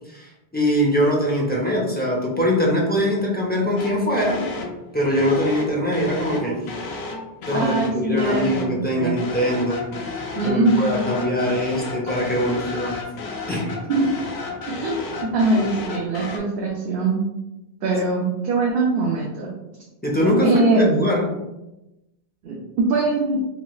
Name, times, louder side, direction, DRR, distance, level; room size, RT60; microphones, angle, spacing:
voice 1, 0.1-4.4 4.9-6.6 7.5-9.8 10.4-13.0 13.5-13.7 20.0-21.3, equal, 15° left, -4 dB, 0.4 m, -22 dB
sound 1, 3.8-4.8 5.2-8.8 9.2-16.4, left 3 dB, 90° left, 0.9 m, -32 dB
voice 2, 7.5-9.2 10.4-11.1 13.9-14.0 14.8-17.2 17.8-19.5 20.4-20.8 22.4-22.6 22.9-23.4, right 2 dB, 70° right, -2 dB, 0.8 m, -22 dB
3.2 x 2.9 x 2.3 m, 0.96 s
omnidirectional pair, 1.0 m